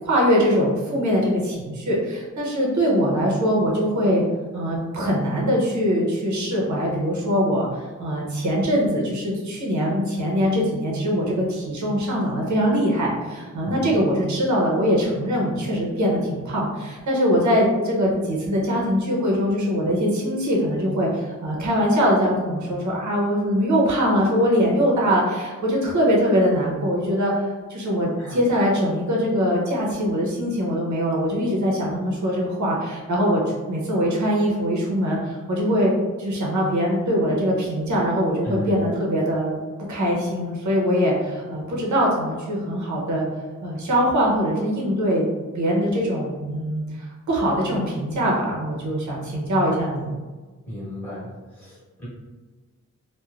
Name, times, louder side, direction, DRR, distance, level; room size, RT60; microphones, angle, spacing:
voice 1, 0.0-4.2 4.5-33.4 33.7-35.9 36.2-39.5 39.9-43.2 43.6-45.2 45.5-50.1, equal, 70° right, -3 dB, 0.8 m, -22 dB
voice 2, 50.7-51.3 51.6-52.1, left 1 dB, 5° left, -11 dB, 1.2 m, -34 dB
3.0 x 2.2 x 2.4 m, 1.3 s
wide cardioid pair, 170°, 30 cm